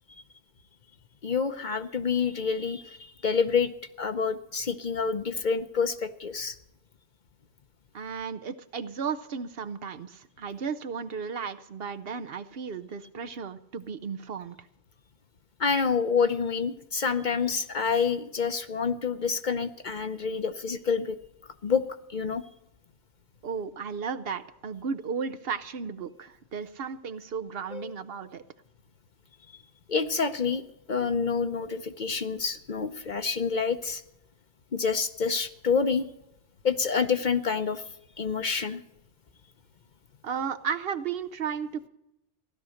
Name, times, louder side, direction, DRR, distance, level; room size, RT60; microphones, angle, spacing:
voice 1, 1.2-6.6 15.6-21.2 21.6-21.8 22.1-22.4 27.7-27.9 29.9-30.6 30.9-34.0 34.7-36.1 36.6-37.8 38.2-38.8, left 5 dB, 50° left, 9 dB, 0.8 m, -27 dB
voice 2, 7.9-14.6 23.4-28.4 40.2-41.9, right 6 dB, 60° right, 9 dB, 0.9 m, -34 dB
15.5 x 11.5 x 6.4 m, 0.87 s
omnidirectional pair, 1.1 m